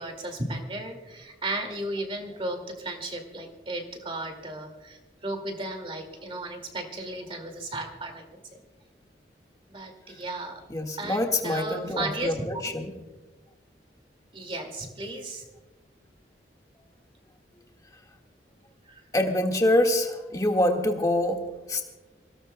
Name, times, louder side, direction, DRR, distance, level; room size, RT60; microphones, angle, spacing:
voice 1, 0.0-8.2 8.5-8.6 9.7-10.6 11.0-12.5 14.3-15.4 18.9-19.0, right 2 dB, 30° right, 4 dB, 2.2 m, -35 dB
voice 2, 10.7-12.9 19.1-21.4 21.7-21.8, left 1 dB, 20° left, 2 dB, 1.7 m, -25 dB
26.5 x 17.0 x 2.2 m, 1.2 s
head